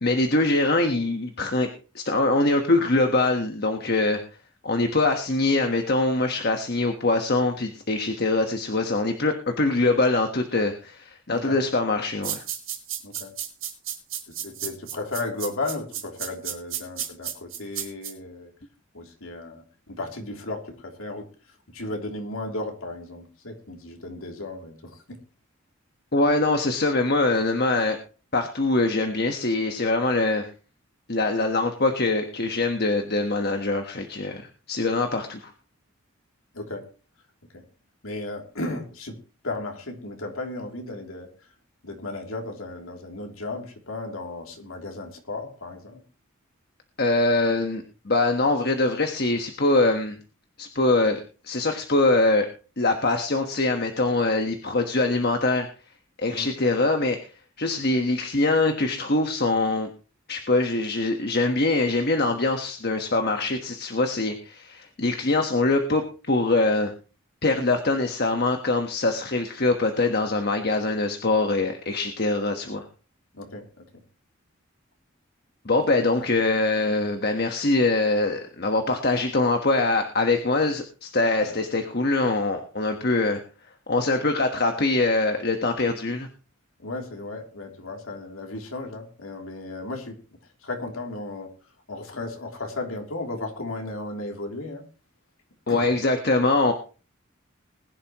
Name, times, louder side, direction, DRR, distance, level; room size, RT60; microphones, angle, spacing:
voice 1, 0.0-1.7 1.9-4.2 4.6-12.4 26.1-28.0 28.3-30.5 31.1-35.5 47.0-50.1 50.6-52.5 52.8-55.7 56.2-57.3 57.6-59.9 60.3-66.9 67.4-72.8 75.6-83.4 83.9-86.3 95.7-96.7, left 2 dB, 50° left, 5 dB, 1.3 m, -23 dB
sound 1, 12.2-18.1, right 10 dB, 70° right, 4.7 m, -32 dB
voice 2, 14.3-18.5 18.9-25.2 36.5-36.9 37.5-37.6 38.0-39.2 39.4-41.3 41.8-46.0 56.3-56.5 73.3-74.0 81.4-81.6 86.8-90.2 90.6-91.5 91.9-94.8 95.7-95.9, left 2 dB, 80° left, 2 dB, 3.1 m, -35 dB
20.5 x 11.0 x 3.0 m, 0.36 s
head